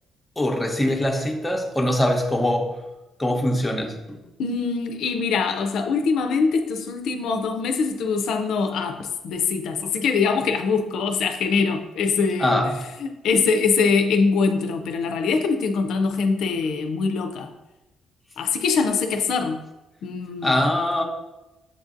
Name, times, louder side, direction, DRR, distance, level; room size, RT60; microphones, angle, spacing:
voice 1, 0.4-2.7 3.2-4.2 12.4-12.8 20.4-21.0, left 1 dB, 10° left, 2 dB, 0.7 m, -22 dB
voice 2, 4.4-12.5 13.0-17.5 18.4-19.6 20.0-20.5, left 5 dB, 80° left, 5 dB, 0.4 m, -23 dB
7.4 x 2.5 x 2.5 m, 1.0 s
cardioid pair, 90°, 0 cm